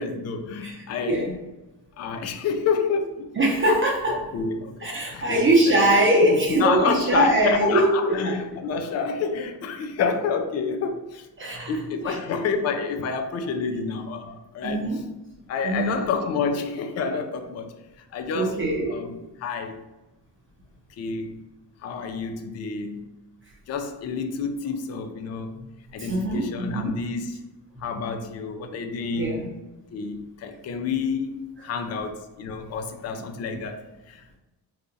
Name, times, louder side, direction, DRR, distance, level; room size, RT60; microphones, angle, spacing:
voice 1, 0.0-1.3 2.0-3.4 4.1-5.8 6.2-11.3 11.7-15.0 15.5-17.7 18.1-18.6 18.9-19.8 21.0-21.4 21.8-23.1 23.7-27.4 27.8-29.5 29.9-34.2, left 5 dB, 40° left, 6 dB, 0.4 m, -29 dB
voice 2, 0.6-1.3 3.4-4.2 4.8-8.4 11.4-11.7 12.0-12.2 14.6-15.0 15.6-16.0 18.3-19.0 26.0-27.0 29.1-29.5, right 1 dB, 30° right, -3 dB, 0.8 m, -22 dB
2.7 x 2.4 x 3.8 m, 1.1 s
cardioid pair, 110°, 40 cm